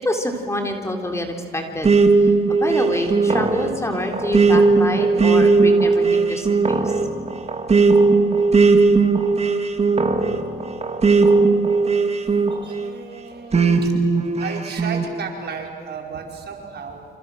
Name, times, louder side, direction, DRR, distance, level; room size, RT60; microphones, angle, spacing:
voice 1, 0.0-7.0, left 1 dB, 15° left, 3 dB, 3.9 m, -27 dB
sound 1, 1.8-12.9 13.5-15.1, right 4 dB, 30° right, 2.6 m, -17 dB
voice 2, 12.2-13.9 14.4-17.1, right 5 dB, 55° right, 1 dB, 5.2 m, -34 dB
28.5 x 27.0 x 6.5 m, 2.3 s
cardioid pair, 90°, 20 cm